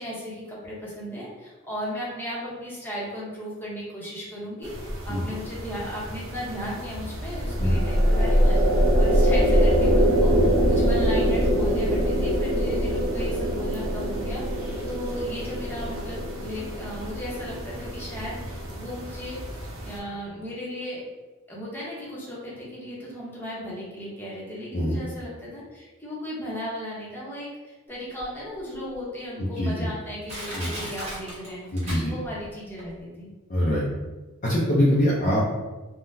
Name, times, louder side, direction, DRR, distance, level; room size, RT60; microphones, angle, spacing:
voice 1, 0.0-8.6 9.0-19.4 19.8-21.0 21.5-31.6 31.9-33.3, equal, 10° left, -7 dB, 0.8 m, -36 dB
sound 1, 4.6-20.0, equal, 70° right, 0.7 m, -37 dB
sound 2, 7.2-18.6, equal, 50° right, 1.5 m, -23 dB
Crushing, 28.2-28.3 28.9-29.0 29.7-29.8 30.3-32.5 32.8-32.9, equal, 30° right, 1.1 m, -36 dB
voice 2, 29.4-29.7 30.6-30.7 31.7-32.1 33.5-33.8 34.4-35.4, equal, 35° left, -6 dB, 0.5 m, -23 dB
3.7 x 2.1 x 2.6 m, 1.2 s
head